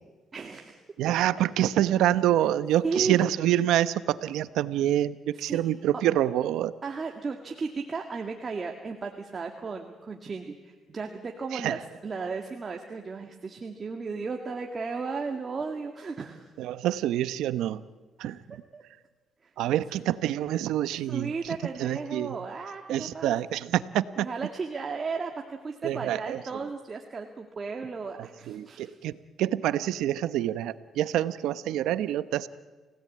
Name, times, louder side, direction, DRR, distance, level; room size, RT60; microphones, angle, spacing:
voice 1, 0.3-0.8 2.8-3.2 5.4-5.6 6.8-16.5 18.3-18.4 18.7-18.8 19.4-19.5 21.1-23.3 24.2-28.9, right 4 dB, 35° right, 3 dB, 2.1 m, -35 dB
voice 2, 1.0-6.7 11.5-11.7 16.6-17.8 18.2-18.6 19.6-22.4 22.9-24.3 25.8-26.4 28.2-29.1 29.4-32.5, right 12 dB, 90° right, 15 dB, 0.9 m, -27 dB
29.5 x 17.5 x 8.6 m, 1.3 s
cardioid pair, 90°, 0 cm